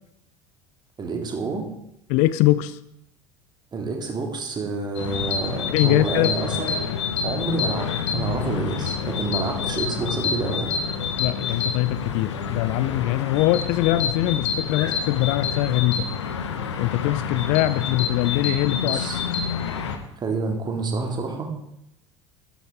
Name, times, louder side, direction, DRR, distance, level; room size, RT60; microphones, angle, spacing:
voice 1, 1.0-1.7 3.7-6.8 7.2-10.7 18.8-19.2 20.2-21.5, right 3 dB, 30° right, 2 dB, 2.3 m, -28 dB
voice 2, 2.1-2.8 5.7-6.3 11.2-16.1 16.8-19.1, left 16 dB, 55° left, 16 dB, 0.4 m, -22 dB
sound 1, 5.0-20.0, left 6 dB, 70° left, 1.0 m, -28 dB
12.0 x 9.9 x 3.6 m, 0.78 s
figure-of-eight pair, 65°, 15 cm